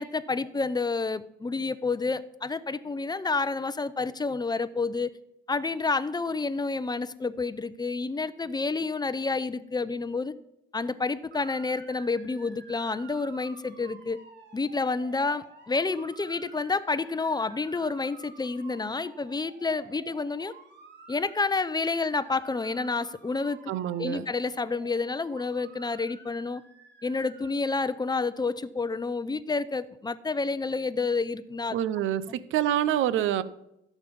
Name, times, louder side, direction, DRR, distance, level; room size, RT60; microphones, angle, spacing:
voice 1, 0.0-5.2 5.5-10.3 10.7-14.2 14.5-20.5 21.1-23.6 24.0-26.6 27.0-31.8, left 3 dB, 20° left, 15 dB, 0.6 m, -29 dB
Motor vehicle (road) / Siren, 11.3-27.5, right 4 dB, 60° right, 2.3 m, -51 dB
voice 2, 23.7-24.3 31.7-33.4, right 11 dB, 80° right, 16 dB, 0.6 m, -26 dB
15.5 x 7.2 x 5.3 m, 0.84 s
cardioid pair, 90°, 20 cm